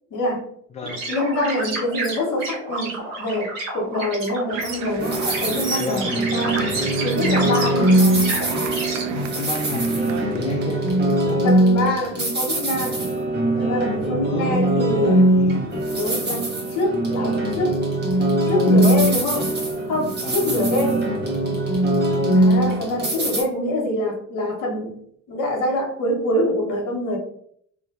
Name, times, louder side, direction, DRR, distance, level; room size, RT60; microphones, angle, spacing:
voice 1, 0.1-0.5 0.8-6.7 7.0-8.3 11.4-13.1 13.6-15.2 15.9-17.8 18.5-19.6 19.9-21.1 22.3-25.0 25.3-27.2, left 1 dB, 55° left, 0 dB, 1.2 m, -25 dB
sound 1, 0.9-9.0, right 2 dB, 70° right, 1.1 m, -30 dB
sound 2, 4.5-11.2, right 10 dB, 45° right, 0.4 m, -35 dB
sound 3, 5.0-23.4, right 1 dB, 25° right, 1.2 m, -21 dB
voice 2, 5.8-6.1 9.1-11.4 14.3-15.7 18.7-19.0 20.2-20.6, left 4 dB, 20° left, 3 dB, 0.3 m, -30 dB
3.0 x 2.7 x 2.5 m, 0.66 s
hypercardioid pair, 55°, 38 cm